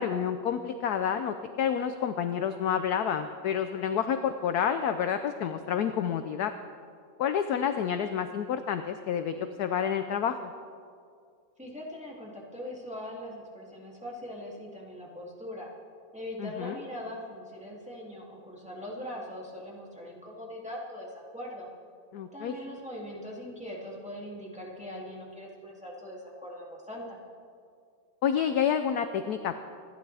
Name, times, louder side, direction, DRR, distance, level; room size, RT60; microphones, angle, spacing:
voice 1, 0.0-6.5 7.2-10.4 16.4-16.8 22.1-22.6 28.2-29.6, left 8 dB, 70° left, 9 dB, 1.0 m, -29 dB
voice 2, 11.6-15.7 16.1-21.7 22.3-27.2, left 1 dB, 5° right, -4 dB, 2.4 m, -41 dB
27.0 x 12.0 x 3.4 m, 2.3 s
omnidirectional pair, 2.0 m